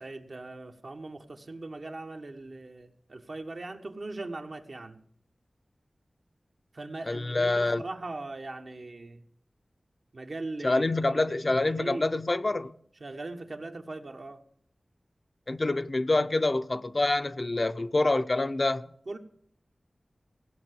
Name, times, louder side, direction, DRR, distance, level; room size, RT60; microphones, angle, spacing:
voice 1, 0.0-5.0 6.7-9.2 10.1-12.1 13.0-14.4 19.1-19.2, right 2 dB, 70° right, 1.2 m, -40 dB
voice 2, 7.1-7.8 10.6-12.7 15.5-18.9, left 2 dB, 45° left, 0.5 m, -26 dB
16.0 x 5.7 x 9.3 m
cardioid pair, 45°, 0 cm